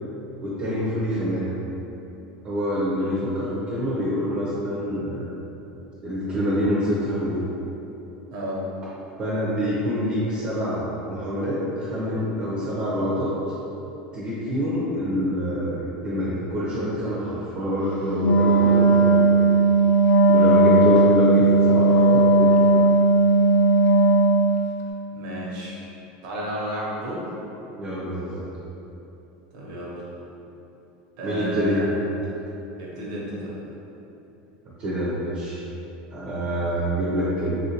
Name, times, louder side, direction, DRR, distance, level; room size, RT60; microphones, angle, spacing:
voice 1, 0.4-1.5 2.4-5.2 6.0-7.3 9.2-13.3 14.1-19.3 20.3-22.8 27.8-28.4 31.2-31.8 34.8-35.6 36.1-37.6, equal, 35° right, -8 dB, 0.6 m, -26 dB
voice 2, 8.3-8.6 20.2-20.6 25.1-25.9 26.2-27.2 29.5-30.1 31.2-32.0 32.8-33.6, right 1 dB, 70° right, -5 dB, 0.9 m, -33 dB
Wind instrument woodwind instrument, 18.2-24.7, right 2 dB, 45° left, 0.3 m, -17 dB
3.6 x 2.5 x 2.8 m, 3.0 s
supercardioid pair, 165°, 4 cm